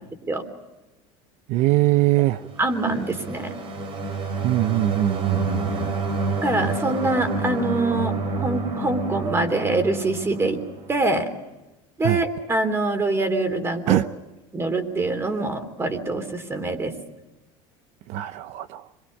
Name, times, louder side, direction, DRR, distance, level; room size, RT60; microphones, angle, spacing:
voice 1, 1.5-2.4 4.4-5.9 12.0-12.2 13.9-14.1 18.1-18.9, right 15 dB, 55° right, 12 dB, 0.7 m, -22 dB
sound 1, 2.4-11.1, right 2 dB, 40° right, 3.2 m, -29 dB
voice 2, 2.6-3.5 6.4-10.6 10.9-11.2 12.0-14.0 14.5-16.9, right 2 dB, 15° right, 8 dB, 3.4 m, -24 dB
26.5 x 22.5 x 5.4 m, 1.0 s
supercardioid pair, 130°, 14 cm